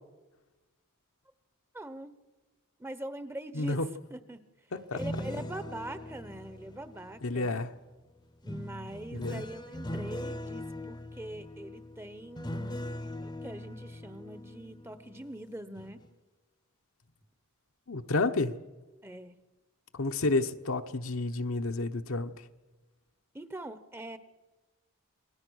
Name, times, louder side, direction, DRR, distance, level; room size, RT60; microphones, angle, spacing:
voice 1, 1.7-2.2 2.8-3.8 4.1-4.4 4.9-7.5 8.4-12.8 13.2-16.0 19.0-19.4 23.3-24.2, right 1 dB, 10° right, 12 dB, 0.9 m, -43 dB
voice 2, 3.5-3.9 4.7-5.0 7.2-7.7 9.1-9.4 17.9-18.6 19.9-22.3, left 2 dB, 65° left, 7 dB, 1.0 m, -30 dB
sound 1, 4.8-7.7 8.5-15.4 15.8-16.1, left 1 dB, 20° left, 0.8 m, -41 dB
28.5 x 21.0 x 6.4 m, 1.2 s
head